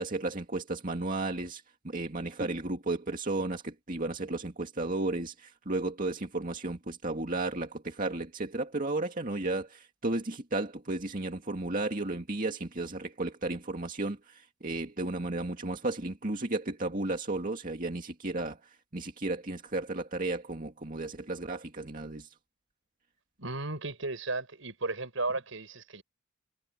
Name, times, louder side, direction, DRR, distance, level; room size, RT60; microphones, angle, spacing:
voice 1, 0.0-22.3, right 2 dB, 45° right, 2.2 m, -34 dB
voice 2, 23.4-26.0, right 3 dB, 75° right, 5.8 m, -34 dB
head